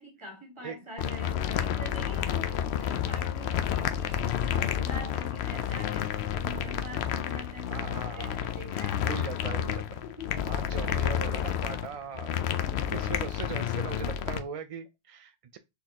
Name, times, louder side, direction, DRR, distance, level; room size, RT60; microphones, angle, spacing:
voice 1, 0.0-9.3 10.0-10.6 11.9-12.0, left 1 dB, 25° right, 1.6 m, -45 dB
sound 1, 1.0-14.4, left 9 dB, 80° left, 0.8 m, -30 dB
voice 2, 7.7-8.4 9.0-10.0 10.5-12.4 12.9-15.6, right 6 dB, 60° right, 0.3 m, -39 dB
4.3 x 4.0 x 2.9 m
omnidirectional pair, 1.1 m